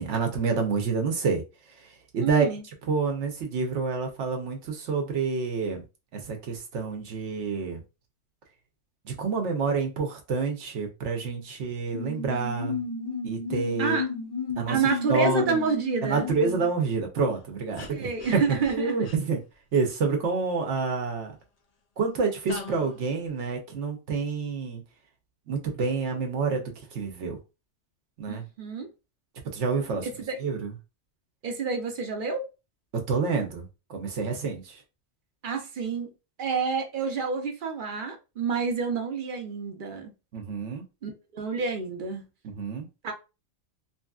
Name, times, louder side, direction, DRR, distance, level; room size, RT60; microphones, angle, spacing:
voice 1, 0.0-1.4 1.7-1.9 2.1-2.5 2.9-5.8 6.1-7.8 9.0-12.8 13.2-14.0 14.6-14.8 15.1-15.6 16.0-18.4 18.7-19.4 19.7-21.3 22.0-24.8 25.5-27.4 28.2-28.4 29.5-30.1 30.4-30.7 32.9-34.8 40.3-40.8 42.4-42.9, right 4 dB, 70° right, 1.0 m, -28 dB
voice 2, 2.2-2.6 13.8-14.1 14.7-16.3 17.9-18.9 28.3-28.9 30.0-30.4 31.4-32.5 35.4-36.1 36.4-40.1 41.0-42.3 43.0-43.1, right 5 dB, 55° right, 0.7 m, -28 dB
sound 1, 11.9-16.7 17.8-17.9 18.2-18.3 18.6-18.7 19.1-19.2 22.5-23.0, left 4 dB, 55° left, 0.4 m, -34 dB
2.9 x 2.6 x 2.3 m
omnidirectional pair, 1.3 m